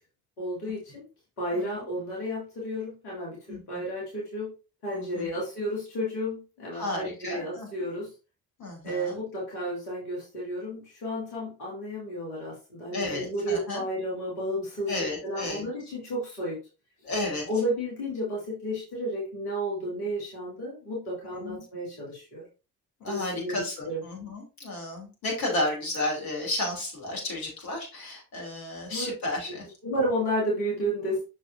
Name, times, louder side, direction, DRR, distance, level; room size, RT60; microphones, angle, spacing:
voice 1, 0.4-1.0 1.4-4.5 4.8-8.1 8.8-14.9 15.2-16.6 17.5-22.4 23.1-24.0 28.9-29.1 29.5-29.6 29.8-31.2, equal, 75° left, -5 dB, 2.7 m, -32 dB
voice 2, 1.5-1.8 3.5-3.8 4.9-5.3 6.8-7.7 8.6-9.2 12.9-13.8 14.9-15.7 17.0-17.5 21.4-21.6 23.0-29.6, left 2 dB, 50° left, -1 dB, 2.8 m, -33 dB
7.2 x 6.4 x 2.6 m, 0.31 s
figure-of-eight pair, 45°, 46 cm